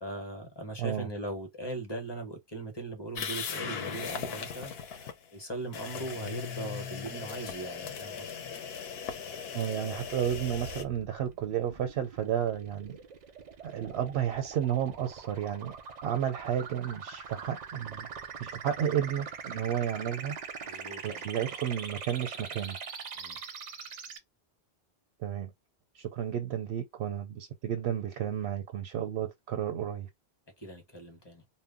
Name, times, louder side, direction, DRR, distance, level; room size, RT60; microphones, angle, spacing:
voice 1, 0.0-8.3 20.6-21.2 23.2-23.4 30.6-31.4, right 2 dB, 30° left, 0.7 m, -39 dB
voice 2, 0.8-1.1 9.5-13.0 13.6-15.8 16.0-18.1 18.4-20.3 21.0-22.8 25.2-25.5 25.9-30.1, right 9 dB, 80° right, 0.8 m, -32 dB
sound 1, 3.2-5.1 5.7-10.8, left 7 dB, 75° left, 0.8 m, -38 dB
sound 2, 10.0-24.2, right 6 dB, 55° right, 0.5 m, -43 dB
2.1 x 2.0 x 3.5 m
omnidirectional pair, 1.1 m